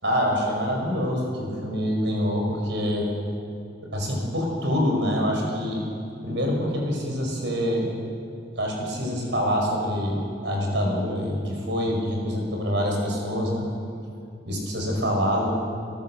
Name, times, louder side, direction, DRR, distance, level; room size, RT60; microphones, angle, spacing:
voice 1, 0.0-3.1 3.9-5.8 6.2-7.9 8.6-13.6 14.5-15.5, equal, 70° right, 0 dB, 5.9 m, -25 dB
27.0 x 13.5 x 7.9 m, 2.4 s
head